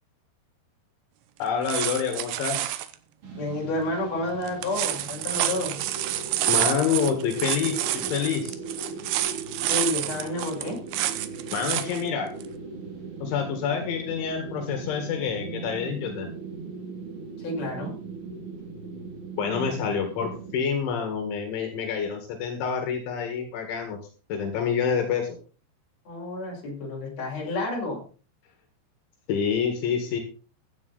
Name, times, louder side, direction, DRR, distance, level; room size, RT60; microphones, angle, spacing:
voice 1, 1.4-2.7 6.5-8.6 11.5-12.3 13.2-16.3 19.4-24.0 24.3-25.4 29.3-30.2, left 7 dB, 75° left, 5 dB, 4.1 m, -27 dB
sound 1, 1.4-3.0 4.5-12.0 12.4-12.5, right 13 dB, 75° right, 3.0 m, -28 dB
sound 2, 3.2-20.6, right 3 dB, 35° right, 2.5 m, -39 dB
voice 2, 3.3-5.8 9.7-10.8 17.4-17.9 26.1-28.0, left 2 dB, 35° left, -1 dB, 6.0 m, -30 dB
16.0 x 11.0 x 4.1 m, 0.38 s
omnidirectional pair, 5.5 m